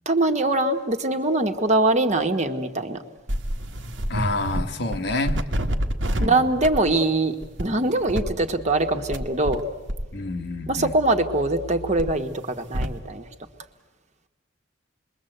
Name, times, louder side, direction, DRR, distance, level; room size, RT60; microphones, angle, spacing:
voice 1, 0.1-3.0 6.2-9.6 10.7-13.2, right 2 dB, 40° right, 5 dB, 1.4 m, -23 dB
sound 1, 3.3-4.6 4.9-6.3 6.6-6.9 7.4-7.6 8.1-9.6 9.9-12.9, equal, 90° right, 1.5 m, -29 dB
voice 2, 4.1-5.4 6.1-6.5 10.1-11.0, left 2 dB, 65° left, 6 dB, 1.3 m, -28 dB
27.0 x 22.0 x 7.9 m, 1.2 s
head